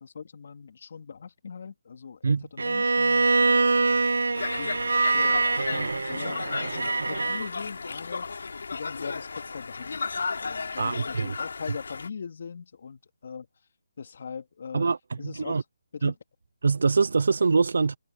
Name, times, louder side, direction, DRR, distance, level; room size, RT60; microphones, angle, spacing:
voice 1, 0.0-4.0 4.5-5.4 5.7-8.3 8.7-13.5 14.0-14.9 15.2-15.6 15.9-16.1, left 6 dB, 50° left, 2.7 m, -41 dB
Bowed string instrument, 2.6-7.5, right 3 dB, 80° right, 1.9 m, -24 dB
Conversation, 4.3-12.1, left 4 dB, 70° left, 3.3 m, -34 dB
voice 2, 10.8-11.4 14.7-15.6 16.0-16.1 16.6-18.0, right 4 dB, 65° right, 0.7 m, -24 dB
hypercardioid pair, 165°, 0 cm